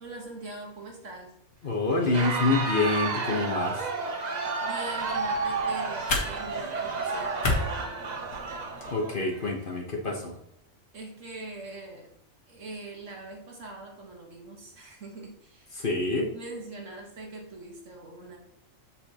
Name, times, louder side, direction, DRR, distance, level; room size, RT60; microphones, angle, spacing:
voice 1, 0.0-1.4 4.6-8.2 10.9-12.1 12.5-15.8 16.3-18.4, right 2 dB, 65° right, 1 dB, 1.8 m, -42 dB
voice 2, 1.6-3.8 8.9-10.3 15.8-16.3, left 3 dB, 40° left, 1 dB, 1.1 m, -27 dB
Crowd, 2.0-9.5, right 4 dB, 40° right, 0.7 m, -31 dB
sound 1, 5.0-8.9, left 3 dB, 90° left, 1.8 m, -33 dB
7.1 x 6.8 x 2.9 m, 0.77 s
omnidirectional pair, 1.4 m